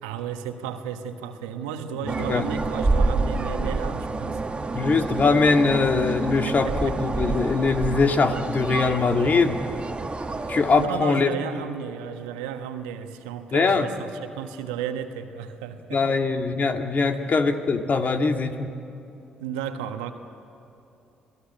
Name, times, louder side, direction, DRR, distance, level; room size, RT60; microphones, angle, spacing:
voice 1, 0.0-4.8 6.4-6.9 10.4-10.5 10.7-16.2 19.4-20.1, right 8 dB, 85° right, 7 dB, 1.3 m, -34 dB
sound 1, 2.1-10.9, right 3 dB, 30° right, 1.6 m, -28 dB
voice 2, 4.7-9.6 10.5-11.3 13.5-13.9 15.9-18.7, left 4 dB, 45° left, 5 dB, 2.0 m, -22 dB
27.5 x 18.0 x 8.8 m, 2.8 s
hypercardioid pair, 45°, 4 cm